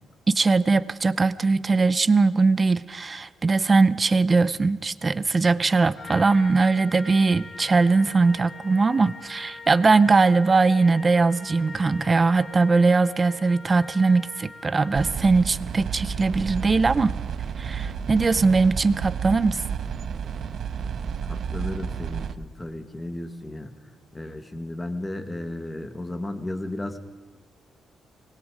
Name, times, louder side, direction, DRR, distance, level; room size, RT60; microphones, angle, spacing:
voice 1, 0.3-17.2 17.6-19.6, right 4 dB, 25° right, 17 dB, 0.7 m, -20 dB
Trumpet, 6.0-15.3, left 3 dB, 50° left, 7.4 m, -43 dB
sound 1, 14.9-22.3, right 7 dB, 55° right, 1.1 m, -31 dB
voice 2, 21.3-23.7 24.1-27.0, left 1 dB, 15° left, 9 dB, 1.8 m, -34 dB
25.5 x 20.5 x 4.9 m, 1.3 s
cardioid pair, 145°, 0 cm